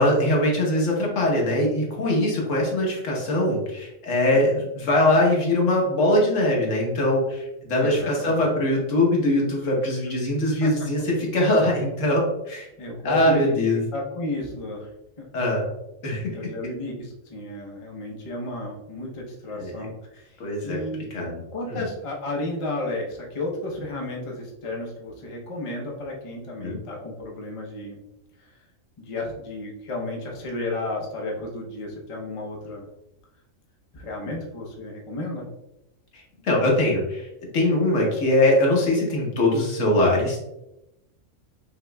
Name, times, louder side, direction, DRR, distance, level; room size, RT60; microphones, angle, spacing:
voice 1, 0.0-12.7 13.0-13.8 15.3-15.6 16.0-16.2 19.5-19.9 20.4-20.8 21.1-21.4 21.7-21.8 26.6-26.8 36.1-37.3 37.5-40.4, left 1 dB, 70° left, -2 dB, 1.4 m, -22 dB
voice 2, 7.8-8.4 10.6-10.7 12.8-13.6 13.9-14.9 15.2-15.3 16.3-21.1 21.5-28.0 28.4-28.5 29.0-32.9 33.9-35.4, left 2 dB, 30° left, -1 dB, 0.7 m, -32 dB
5.8 x 2.9 x 2.3 m, 0.88 s
omnidirectional pair, 1.4 m